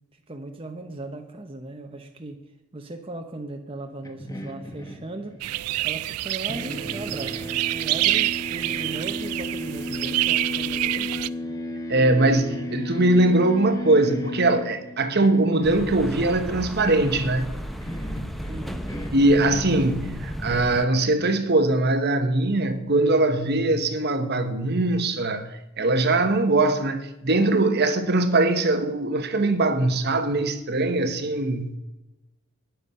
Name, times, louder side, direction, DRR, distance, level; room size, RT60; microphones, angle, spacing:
voice 1, 0.3-2.4 2.7-5.4 5.8-11.3 18.5-18.8, right 2 dB, 25° right, 0.9 m, -38 dB
sound 1, 4.0-6.2 6.5-20.5, left 1 dB, 15° left, 1.2 m, -35 dB
sound 2, 5.4-11.3, right 17 dB, 90° right, 0.4 m, -27 dB
voice 2, 11.9-17.5 19.1-31.8, right 2 dB, 50° right, 1.1 m, -21 dB
sound 3, 15.6-20.9, equal, ahead, 0.7 m, -34 dB
12.5 x 10.5 x 5.6 m
head